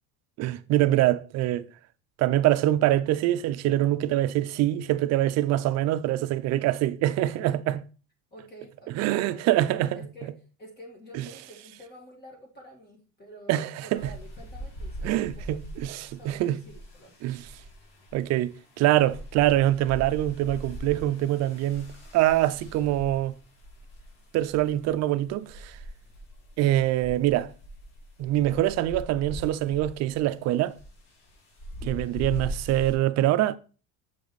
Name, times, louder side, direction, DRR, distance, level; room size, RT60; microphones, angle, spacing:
voice 1, 0.4-1.6 2.2-7.8 8.9-10.0 13.5-14.0 15.0-16.6 17.2-17.5 18.1-21.9 22.1-23.3 24.3-25.8 26.6-27.5 28.2-30.7 31.8-33.6, right 14 dB, 45° right, 0.4 m, -24 dB
voice 2, 8.3-9.5 9.7-10.3 10.6-15.5 16.1-17.1, equal, 25° left, 1.7 m, -48 dB
sound 1, 13.9-33.0, equal, 75° left, 3.2 m, -42 dB
7.0 x 5.0 x 4.0 m
cardioid pair, 155°, 38 cm